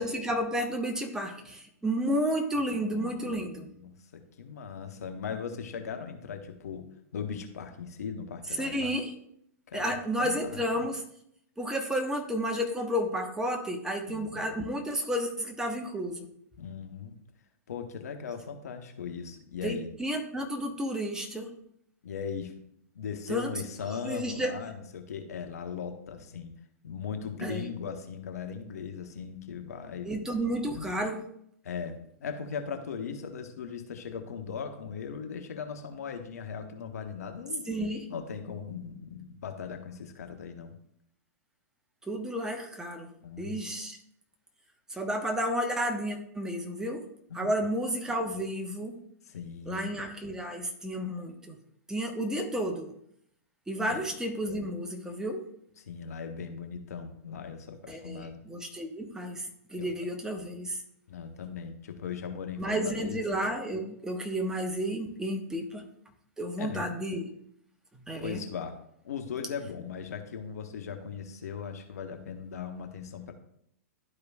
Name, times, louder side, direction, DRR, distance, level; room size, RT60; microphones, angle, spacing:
voice 1, 0.0-3.7 8.6-9.1 9.7-11.0 11.6-16.3 19.6-21.5 23.3-23.5 23.9-24.5 27.4-27.6 30.0-31.2 37.7-38.1 42.1-43.1 43.4-44.0 44.9-47.0 47.3-49.0 49.7-51.6 51.9-52.9 53.7-55.5 57.9-60.8 62.6-65.9 66.4-67.3 68.1-68.4, equal, 5° right, 2 dB, 1.1 m, -32 dB
voice 2, 2.6-8.9 9.7-10.8 14.0-14.5 16.6-17.1 17.7-19.9 22.0-22.5 22.9-26.5 26.8-30.1 30.7-30.9 31.6-37.7 38.1-40.7 43.2-43.6 47.3-47.5 49.3-49.9 53.9-54.0 55.9-58.4 59.8-59.9 61.1-63.2 66.6-67.0 68.2-68.8 69.0-73.3, left 6 dB, 70° left, 6 dB, 1.0 m, -39 dB
12.0 x 4.9 x 2.4 m, 0.72 s
figure-of-eight pair, 105°, 9 cm